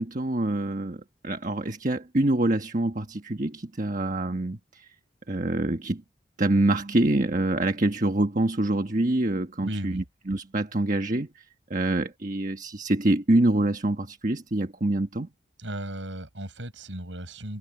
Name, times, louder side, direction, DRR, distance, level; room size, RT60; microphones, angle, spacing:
voice 1, 0.0-4.9 5.3-6.0 6.4-11.4 11.7-15.3, right 1 dB, 40° right, 1.4 m, -26 dB
voice 2, 9.6-10.0 15.6-17.6, right 1 dB, 80° right, 6.2 m, -35 dB
head